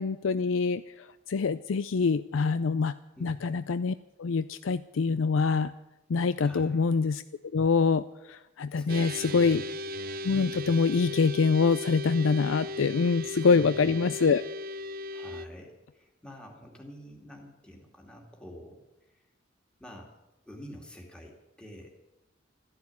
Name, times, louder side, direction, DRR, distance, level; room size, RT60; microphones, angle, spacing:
voice 1, 0.0-2.9 3.2-5.7 6.1-7.2 7.5-9.6 10.2-14.4, left 4 dB, 80° left, 14 dB, 0.5 m, -25 dB
voice 2, 6.4-6.8 8.8-9.6 13.5-13.9 15.1-18.8 19.8-20.1 20.5-21.9, equal, 5° left, 0 dB, 2.4 m, -47 dB
sound 1, 8.9-15.5, left 1 dB, 50° right, 0.7 m, -37 dB
14.0 x 10.5 x 9.7 m, 0.99 s
head